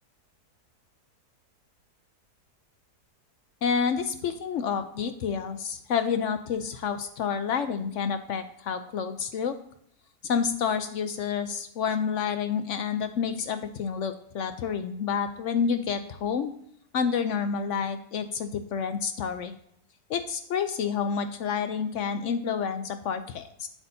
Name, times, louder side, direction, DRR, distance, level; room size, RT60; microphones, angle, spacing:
voice 1, 3.6-9.5 10.2-16.5 16.9-19.5 20.1-23.7, left 6 dB, 65° left, 9 dB, 0.7 m, -29 dB
8.3 x 8.0 x 2.7 m, 0.72 s
omnidirectional pair, 1.7 m